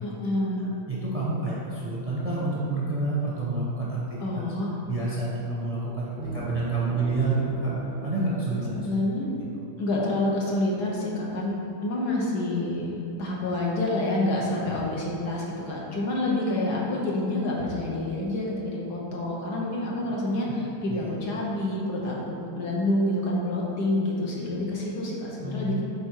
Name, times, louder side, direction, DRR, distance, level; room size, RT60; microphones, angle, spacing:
voice 1, 0.0-0.7 4.2-4.7 8.7-9.3 9.8-12.9 13.2-25.8, left 1 dB, 65° left, -4 dB, 1.6 m, -28 dB
voice 2, 0.6-4.2 4.9-7.7 8.0-8.8 20.9-21.1 25.4-25.7, right 2 dB, 30° right, -6 dB, 0.7 m, -29 dB
sound 1, 6.2-10.6, right 8 dB, 80° right, 0.4 m, -35 dB
8.6 x 3.6 x 4.6 m, 2.6 s
omnidirectional pair, 2.0 m